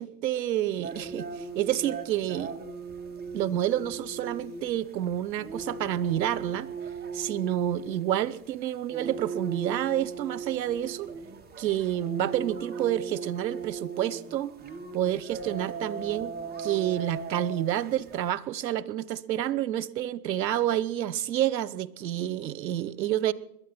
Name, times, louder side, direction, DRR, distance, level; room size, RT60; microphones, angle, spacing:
voice 1, 0.0-2.6 3.3-6.7 7.1-11.1 11.6-14.5 14.9-23.3, right 12 dB, 85° right, 20 dB, 0.9 m, -29 dB
sound 1, 0.8-18.3, right 5 dB, 20° right, 1.8 m, -38 dB
21.5 x 12.5 x 4.3 m, 0.83 s
hypercardioid pair, 120°, 50 cm